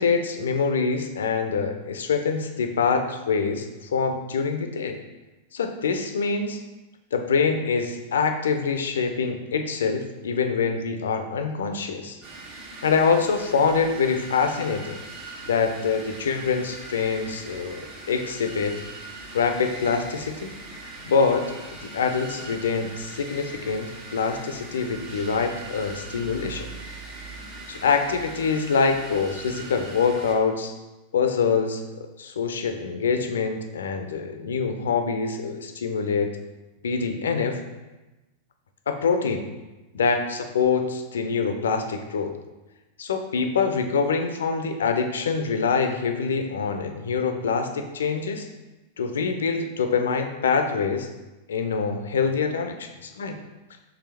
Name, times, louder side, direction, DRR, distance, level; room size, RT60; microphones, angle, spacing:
voice 1, 0.0-5.0 5.5-6.6 7.1-12.2 12.8-15.0 15.5-18.8 19.3-20.5 21.0-21.4 21.8-26.7 27.7-30.7 31.1-36.3 36.8-37.6 38.9-39.5 39.9-42.3 43.0-48.5 49.0-51.1 51.5-53.4, left 5 dB, 65° left, 6 dB, 0.4 m, -25 dB
sound 1, 12.2-30.3, right 3 dB, 40° right, 0.8 m, -41 dB
4.7 x 3.4 x 3.3 m, 1.1 s
figure-of-eight pair, 90°, 0 cm